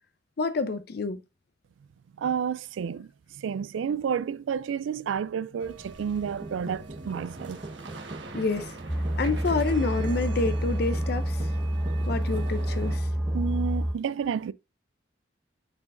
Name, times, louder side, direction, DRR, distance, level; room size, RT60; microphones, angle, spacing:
voice 1, 0.4-1.2 8.3-8.7 9.2-11.5 12.1-13.1, left 3 dB, 55° left, 0.5 m, -28 dB
voice 2, 2.2-3.1 3.4-7.6 13.3-14.5, right 7 dB, 85° right, 0.3 m, -30 dB
sound 1, 5.6-13.0, right 3 dB, 70° right, 1.2 m, -43 dB
sound 2, 6.2-13.6, right 2 dB, 35° right, 0.6 m, -41 dB
sound 3, 8.9-13.9, right 1 dB, ahead, 2.1 m, -28 dB
8.6 x 4.5 x 2.5 m
head